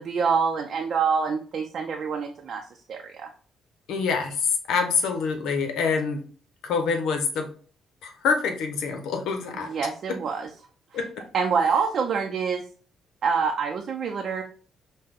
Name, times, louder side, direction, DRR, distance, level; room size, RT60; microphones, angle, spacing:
voice 1, 0.0-2.6 2.9-3.3 9.5-10.5 11.3-12.6 13.2-14.4, right 5 dB, 60° right, 2 dB, 0.6 m, -26 dB
voice 2, 3.9-6.2 6.6-7.5 8.0-9.7 10.9-11.2, left 5 dB, 85° left, 5 dB, 0.9 m, -26 dB
5.5 x 2.2 x 3.6 m, 0.43 s
cardioid pair, 90°, 0 cm